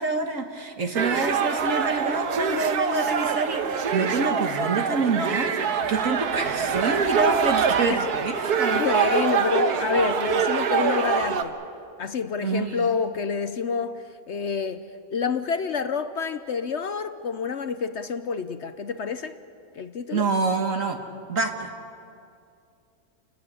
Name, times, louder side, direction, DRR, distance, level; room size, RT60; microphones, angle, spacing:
voice 1, 0.0-8.8 12.4-12.9 20.1-21.0 21.3-21.7, right 3 dB, 55° right, 4 dB, 1.7 m, -27 dB
sound 1, 1.0-11.4, right 6 dB, 80° right, 1.7 m, -25 dB
voice 2, 8.3-11.6 12.0-14.9 15.1-19.4 19.7-20.3, left 5 dB, 55° left, 11 dB, 0.9 m, -28 dB
29.5 x 14.0 x 9.9 m, 2.5 s
omnidirectional pair, 1.7 m